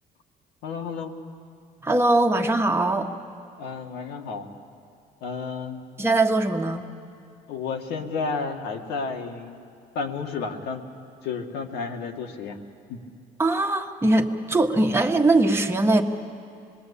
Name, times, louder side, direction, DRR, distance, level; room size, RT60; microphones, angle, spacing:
voice 1, 0.6-1.1 3.6-4.5 5.2-5.9 7.5-9.6 9.9-10.8 11.2-12.6 12.9-13.0, left 5 dB, 85° left, 2 dB, 2.2 m, -31 dB
voice 2, 1.8-3.1 6.0-6.8 13.4-16.0, right 2 dB, 15° right, 3 dB, 1.5 m, -21 dB
26.5 x 21.0 x 8.5 m, 2.5 s
cardioid pair, 110°, 17 cm